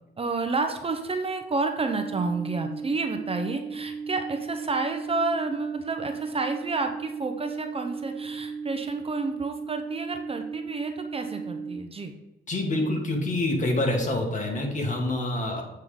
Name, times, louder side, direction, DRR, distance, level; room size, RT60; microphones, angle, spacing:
voice 1, 0.2-12.1, right 3 dB, 30° right, 6 dB, 0.7 m, -30 dB
sound 1, 1.8-11.8, right 5 dB, 5° left, 1.7 m, -36 dB
voice 2, 12.5-15.6, left 1 dB, 40° left, 1 dB, 1.8 m, -26 dB
7.9 x 3.7 x 4.9 m, 1.0 s
cardioid pair, 90°, 20 cm